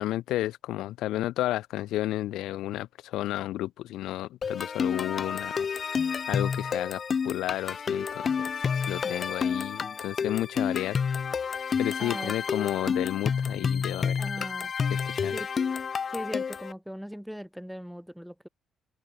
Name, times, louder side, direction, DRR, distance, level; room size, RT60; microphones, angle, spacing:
voice 1, 0.0-6.0 6.3-8.4 8.7-11.0 11.8-14.4 14.9-15.4, left 15 dB, 85° left, 2.1 m, -32 dB
sound 1, 4.4-16.7, left 6 dB, 35° left, 1.1 m, -29 dB
voice 2, 12.0-12.3 14.2-14.7 15.3-15.5 16.1-18.5, equal, ahead, 6.7 m, -39 dB
open air
cardioid pair, 145°, 0 cm